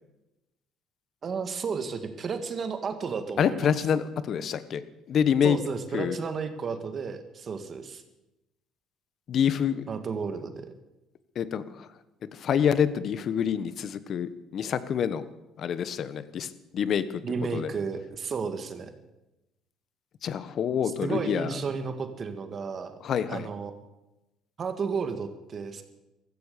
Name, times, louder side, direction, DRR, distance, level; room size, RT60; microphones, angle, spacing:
voice 1, 1.2-3.7 5.4-8.0 9.9-10.7 17.2-18.9 21.0-22.9 23.3-23.7 24.6-25.8, right 5 dB, 40° right, 8 dB, 1.8 m, -32 dB
voice 2, 3.4-5.6 5.9-6.2 9.3-9.8 11.3-11.9 12.3-15.3 15.6-17.2 17.5-17.7 20.2-21.6 23.0-23.5, left 8 dB, 50° left, 14 dB, 1.1 m, -27 dB
15.5 x 13.5 x 6.8 m, 0.98 s
cardioid pair, 100°, 0 cm